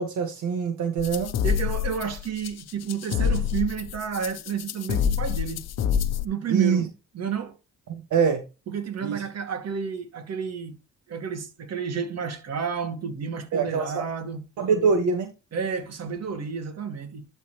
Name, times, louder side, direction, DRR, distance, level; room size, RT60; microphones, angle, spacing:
voice 1, 0.0-1.3 6.5-6.9 7.9-8.4 9.0-9.2 13.5-14.0 14.6-15.3, right 5 dB, 75° right, 1.8 m, -24 dB
sound 1, 1.0-6.2, left 8 dB, 60° left, 0.9 m, -27 dB
voice 2, 1.4-5.6 6.2-6.9 7.1-7.6 8.7-10.8 11.1-14.4 15.5-17.3, right 7 dB, 55° right, 2.3 m, -31 dB
12.0 x 4.4 x 3.1 m
cardioid pair, 90°, 30 cm